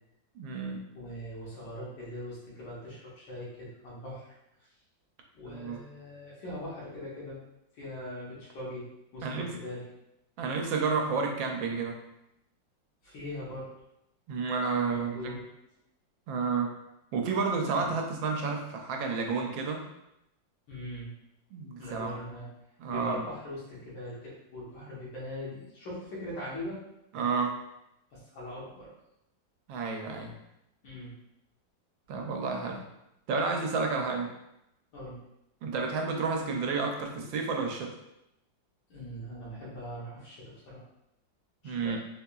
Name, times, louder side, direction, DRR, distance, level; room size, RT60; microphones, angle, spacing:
voice 1, 0.3-0.8 5.4-5.8 9.2-9.5 10.4-12.0 14.3-15.4 16.3-16.7 17.1-19.8 21.5-22.1 22.8-23.3 27.1-27.5 29.7-30.3 32.1-32.8 33.3-34.3 35.6-37.9 41.6-42.0, right 4 dB, 85° right, 2 dB, 1.4 m, -31 dB
voice 2, 0.9-4.4 5.3-7.4 7.7-8.9 9.1-9.8 13.0-13.7 14.9-15.4 17.8-17.9 20.7-21.1 21.8-22.5 22.9-26.8 28.1-28.9 30.8-31.1 34.9-35.2 38.9-40.8 41.6-42.0, left 1 dB, 80° left, -7 dB, 1.8 m, -41 dB
4.0 x 2.8 x 2.3 m, 0.86 s
omnidirectional pair, 2.0 m